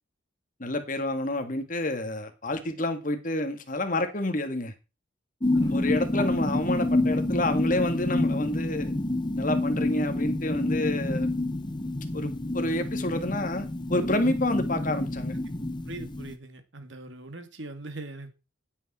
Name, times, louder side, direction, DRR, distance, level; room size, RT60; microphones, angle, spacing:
voice 1, 0.6-4.7 5.7-8.9 9.4-11.3 12.1-15.3, left 1 dB, 40° left, 2.0 m, -29 dB
sound 1, 5.4-16.4, left 2 dB, 20° left, 1.0 m, -28 dB
voice 2, 5.5-5.9 15.9-18.4, right 2 dB, 65° right, 2.3 m, -41 dB
16.5 x 8.6 x 4.4 m
head